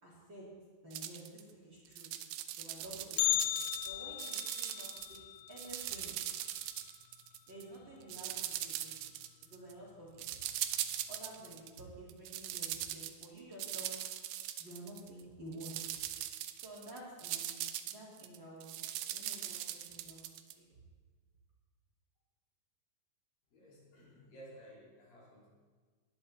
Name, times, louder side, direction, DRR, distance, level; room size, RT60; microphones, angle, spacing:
voice 1, 0.0-0.5 0.8-2.1 2.5-5.2 5.5-6.1 7.5-9.0 9.5-10.4 11.1-14.0 14.6-16.0 16.6-17.5 17.9-18.8 19.1-20.2 20.6-20.7, right 1 dB, 30° right, -5 dB, 3.3 m, -51 dB
sound 1, 0.9-1.4 1.9-3.9 4.2-5.2 5.5-7.6 8.1-9.7 10.2-11.8 12.1-15.2 15.5-20.5, right 12 dB, 75° right, 2.4 m, -40 dB
Bell, 3.2-7.3 7.5-7.6 8.1-8.2 9.0-9.1 9.9-10.2 10.5-10.6, left 18 dB, 80° left, 2.5 m, -37 dB
voice 2, 23.5-25.5, right 1 dB, 60° left, -5 dB, 5.5 m, -55 dB
20.5 x 11.0 x 4.4 m, 1.5 s
omnidirectional pair, 4.4 m